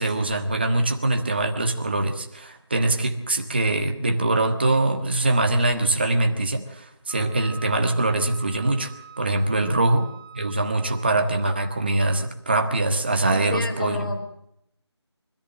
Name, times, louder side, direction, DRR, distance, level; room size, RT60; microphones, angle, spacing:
voice 1, 0.0-8.9 9.2-10.1 10.3-14.1, right 2 dB, 20° right, 5 dB, 1.4 m, -23 dB
Wind instrument woodwind instrument, 7.1-12.3, right 6 dB, 25° left, 5.3 m, -45 dB
voice 2, 13.3-14.2, left 1 dB, 50° left, 6 dB, 4.2 m, -31 dB
25.0 x 14.0 x 7.6 m, 0.76 s
figure-of-eight pair, 175°, 15 cm